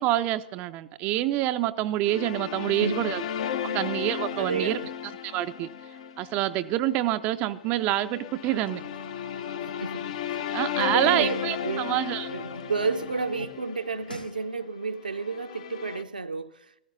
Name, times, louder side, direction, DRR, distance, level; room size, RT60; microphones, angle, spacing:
voice 1, 0.0-3.2 3.7-4.8 5.2-5.7 6.2-8.8 10.5-12.3, right 14 dB, 30° right, 0.5 m, -27 dB
sound 1, 2.0-16.0, left 9 dB, 50° left, 0.7 m, -35 dB
voice 2, 2.7-3.3 3.6-3.8 4.3-4.9 9.8-10.0 10.3-12.0 12.3-16.8, right 4 dB, 80° right, 0.7 m, -32 dB
sound 2, 8.4-13.5 13.8-14.4, left 1 dB, 90° left, 1.0 m, -45 dB
15.0 x 13.5 x 3.9 m
figure-of-eight pair, 105°, 5 cm